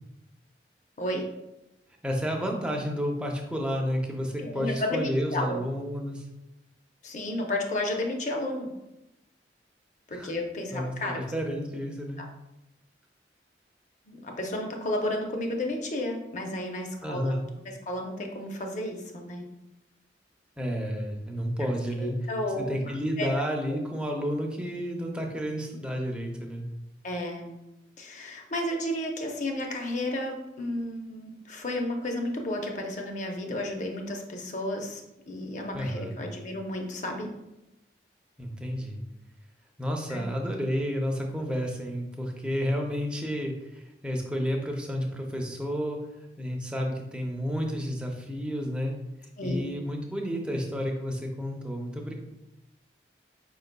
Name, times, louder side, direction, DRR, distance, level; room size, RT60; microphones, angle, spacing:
voice 1, 2.0-6.3 10.1-10.3 10.7-12.2 17.0-17.4 20.6-22.2 22.6-26.7 35.7-36.1 38.4-39.0 39.8-46.0 46.4-48.9 49.4-52.1, equal, 5° right, 0 dB, 0.5 m, -31 dB
voice 2, 4.4-5.6 7.0-8.7 10.1-11.2 12.2-12.3 14.1-17.3 17.6-19.4 22.0-23.3 27.0-27.5 28.0-35.0 35.3-37.3 40.1-40.2 49.4-49.6, left 1 dB, 45° left, 2 dB, 0.6 m, -32 dB
5.1 x 3.8 x 2.2 m, 0.92 s
head